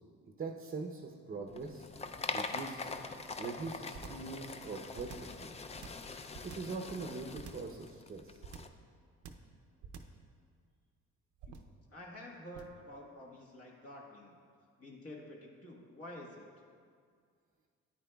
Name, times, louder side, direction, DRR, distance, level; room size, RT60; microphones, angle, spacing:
voice 1, 0.2-1.9 2.3-2.9 3.4-5.7 6.4-8.4, right 4 dB, 30° right, 1 dB, 0.7 m, -42 dB
sound 1, 1.5-8.7, left 4 dB, 20° left, 0.4 m, -43 dB
sound 2, 3.9-4.3 4.9-5.4 5.8-6.8 7.4-7.8 8.4-8.8 9.2-9.5 9.8-10.2 11.4-11.8 12.5-12.8, right 6 dB, 75° right, 0.6 m, -48 dB
voice 2, 11.9-14.4 14.8-16.4, left 1 dB, 50° left, -2 dB, 1.4 m, -49 dB
9.9 x 9.2 x 2.3 m, 2.1 s
cardioid pair, 90°, 30 cm